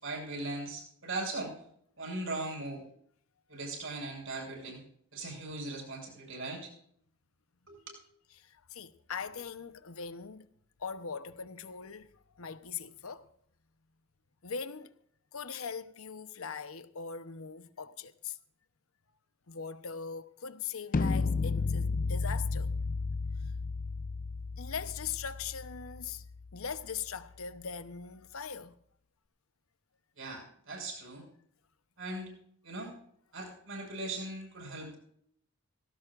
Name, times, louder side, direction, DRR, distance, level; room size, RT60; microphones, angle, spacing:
voice 1, 0.0-1.5 2.0-2.8 3.5-4.8 5.1-6.7 7.7-8.0 30.2-31.2 32.0-32.3 32.6-32.9 33.3-35.0, right 2 dB, 65° right, 6.6 m, -39 dB
voice 2, 8.4-10.5 10.8-13.3 14.4-14.9 15.3-18.4 19.5-22.7 24.6-26.3 26.5-28.8, left 6 dB, 80° left, 0.9 m, -41 dB
sound 1, 20.9-26.9, left 4 dB, 40° left, 0.5 m, -33 dB
18.0 x 17.0 x 2.5 m
head